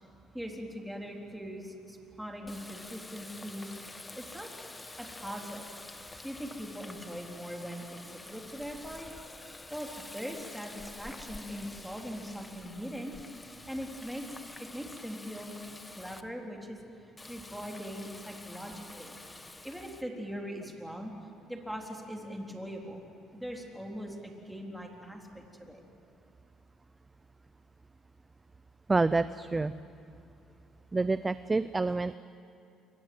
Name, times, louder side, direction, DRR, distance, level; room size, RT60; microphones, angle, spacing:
voice 1, 0.3-4.5 5.0-5.7 6.2-9.1 9.7-13.1 13.4-14.3 14.6-15.6 15.9-16.8 17.3-19.2 19.6-21.1 21.5-23.0 23.3-25.8, equal, ahead, 0 dB, 3.6 m, -41 dB
Water tap faucet, 2.4-16.2 17.2-20.0, left 2 dB, 15° left, 1.2 m, -48 dB
voice 2, 28.9-29.7 30.9-32.2, right 3 dB, 15° right, 14 dB, 0.5 m, -27 dB
28.0 x 24.0 x 7.8 m, 2.7 s
cardioid pair, 120°, 0 cm